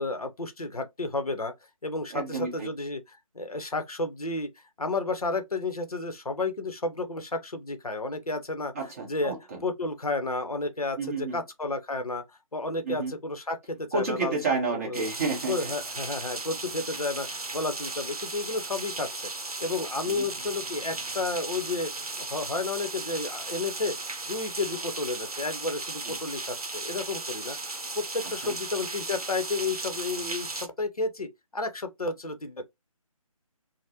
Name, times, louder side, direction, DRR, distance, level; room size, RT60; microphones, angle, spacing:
voice 1, 0.0-1.5 1.8-8.7 9.1-9.3 9.6-12.2 12.5-14.4 14.7-15.0 15.5-19.3 19.6-24.0 24.3-32.6, left 3 dB, 85° left, 0.7 m, -32 dB
voice 2, 2.1-2.7 8.7-9.6 11.0-11.4 12.8-13.1 13.9-15.7 20.0-20.3 26.0-26.2 28.4-28.5, right 4 dB, 25° right, 1.1 m, -30 dB
sound 1, 14.9-30.7, right 3 dB, 85° right, 0.7 m, -36 dB
3.4 x 2.1 x 2.7 m
figure-of-eight pair, 150°, 19 cm